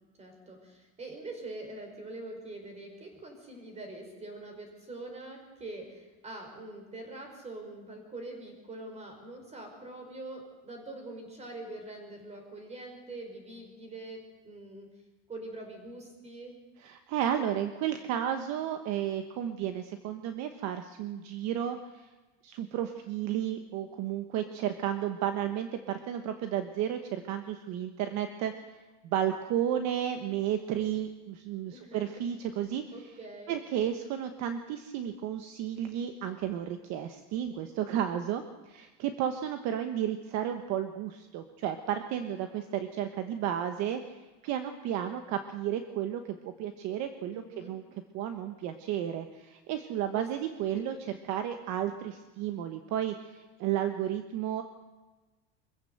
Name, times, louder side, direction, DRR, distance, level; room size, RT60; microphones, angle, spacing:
voice 1, 0.2-14.9 15.3-16.5 31.7-32.2 32.9-33.5 47.3-47.7 50.1-50.3 50.8-50.9, right 2 dB, 20° right, 4 dB, 5.0 m, -44 dB
voice 2, 16.8-22.1 22.4-28.5 29.0-32.8 33.5-47.8 48.1-50.9 51.3-54.6, right 10 dB, 50° right, 7 dB, 1.3 m, -33 dB
24.0 x 15.5 x 8.0 m, 1.2 s
cardioid pair, 165°, 35 cm